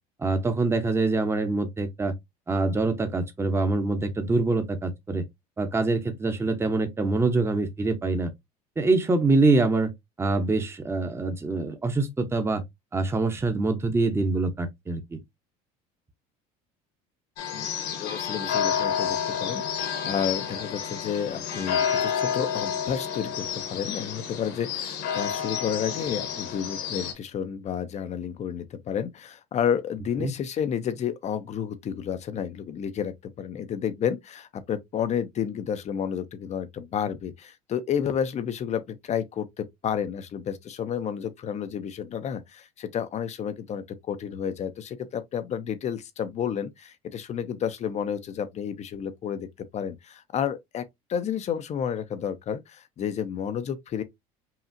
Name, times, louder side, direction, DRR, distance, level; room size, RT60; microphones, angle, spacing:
voice 1, 0.2-2.1 2.5-5.2 5.6-8.3 8.8-9.9 10.2-12.6 12.9-15.2 30.2-30.3, right 3 dB, 15° right, 0.8 m, -25 dB
sound 1, 17.4-27.1, left 8 dB, 60° left, 1.3 m, -30 dB
voice 2, 17.5-49.5 49.7-54.0, left 8 dB, 35° left, 0.6 m, -31 dB
5.7 x 2.4 x 2.7 m
supercardioid pair, 105°, 19 cm